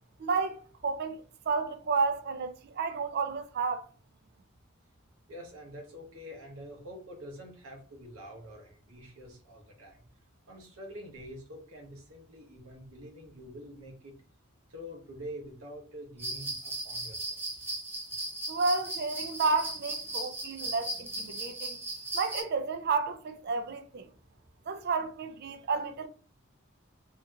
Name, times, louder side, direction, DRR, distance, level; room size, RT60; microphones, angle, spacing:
voice 1, 0.2-3.8 18.5-21.8 22.1-24.1 24.7-26.1, right 4 dB, 50° right, 0.4 m, -31 dB
voice 2, 5.3-10.0 10.5-14.1 14.7-17.4, equal, 85° right, 1.0 m, -46 dB
sound 1, 16.2-22.4, right 2 dB, 10° right, 0.8 m, -37 dB
2.8 x 2.7 x 2.4 m
head